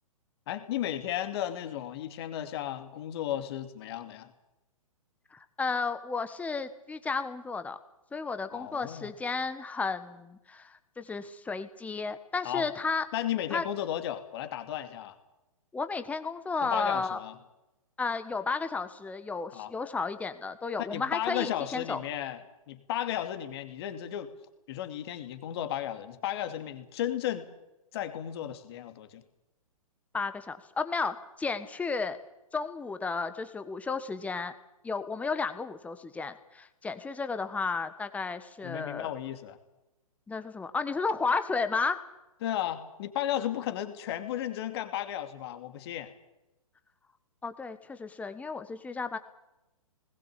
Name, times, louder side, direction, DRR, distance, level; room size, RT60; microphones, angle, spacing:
voice 1, 0.5-4.3 8.5-9.1 12.4-12.7 13.1-15.2 16.6-17.3 19.5-19.7 20.9-22.4 22.7-24.3 24.7-27.5 27.9-29.2 38.6-39.6 42.4-46.1, left 11 dB, 45° left, 8 dB, 2.6 m, -34 dB
voice 2, 5.3-7.8 8.1-13.1 13.5-13.6 15.7-17.2 18.0-22.0 30.1-32.2 32.5-34.5 34.8-39.1 40.3-42.0 47.4-49.2, left 4 dB, 5° left, 10 dB, 1.4 m, -33 dB
20.5 x 19.5 x 8.4 m, 0.96 s
figure-of-eight pair, 120°, 19 cm